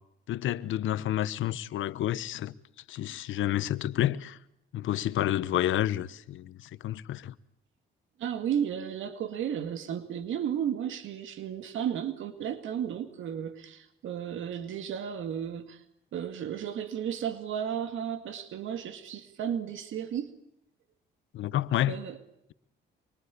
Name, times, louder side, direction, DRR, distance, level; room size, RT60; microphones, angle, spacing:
voice 1, 0.3-2.5 2.9-4.4 4.7-7.3 21.3-22.0, left 12 dB, 75° left, 1.1 m, -29 dB
voice 2, 8.2-15.8 16.1-20.3 21.9-22.2, right 9 dB, 75° right, 2.1 m, -33 dB
25.5 x 24.5 x 8.4 m
cardioid pair, 90°, 20 cm